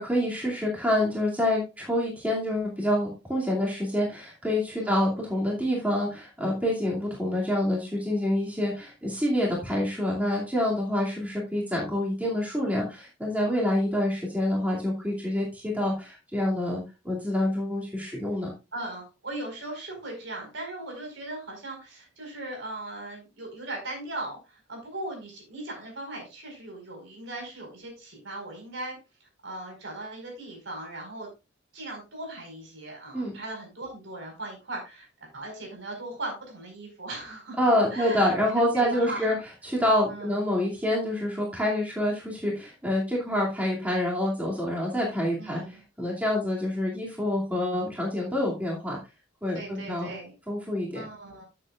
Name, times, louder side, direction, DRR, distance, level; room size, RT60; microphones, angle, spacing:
voice 1, 0.0-18.5 33.1-33.3 37.6-39.4 39.6-49.0 49.4-50.1 50.5-51.0, left 1 dB, 10° right, -4 dB, 2.5 m, -27 dB
voice 2, 18.7-31.3 31.7-35.0 35.3-37.6 37.9-39.4 40.1-40.4 45.4-45.8 49.5-50.3 50.9-51.4, right 2 dB, 65° right, 1 dB, 4.8 m, -38 dB
12.0 x 7.8 x 2.4 m, 0.27 s
head